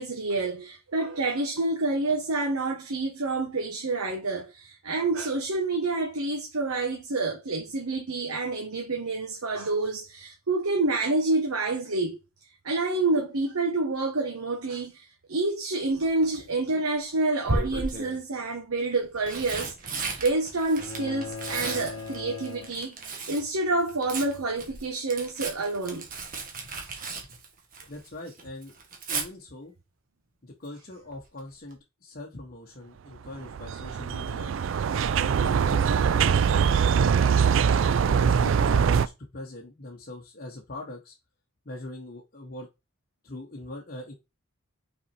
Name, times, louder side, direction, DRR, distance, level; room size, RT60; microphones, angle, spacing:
voice 1, 0.0-12.2 12.6-22.9 23.3-26.0, right 2 dB, 85° right, 1.2 m, -28 dB
Tearing, 16.0-16.4 17.5-18.2 19.0-23.5 23.8-28.1 28.4-29.3 31.1-31.4 31.7-31.8, right 3 dB, 40° right, 1.5 m, -34 dB
sound 1, 20.8-23.3, left 4 dB, 25° left, 2.0 m, -39 dB
voice 2, 27.9-28.7 29.1-29.7 30.4-34.5 35.1-37.3 38.1-41.1 41.6-42.7 43.2-44.1, left 2 dB, 45° left, 1.0 m, -42 dB
sound 2, 33.3-39.1, right 7 dB, 60° right, 0.3 m, -22 dB
5.9 x 4.2 x 4.3 m
head